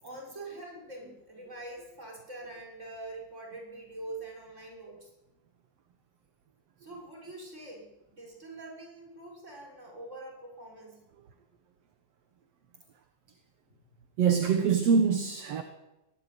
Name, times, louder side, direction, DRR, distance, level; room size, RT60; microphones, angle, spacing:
voice 1, 0.0-5.1 6.8-11.0, right 2 dB, 20° right, -1 dB, 6.6 m, -44 dB
voice 2, 14.2-15.6, right 6 dB, 55° right, 6 dB, 2.2 m, -24 dB
22.5 x 17.5 x 9.5 m, 0.99 s
omnidirectional pair, 3.8 m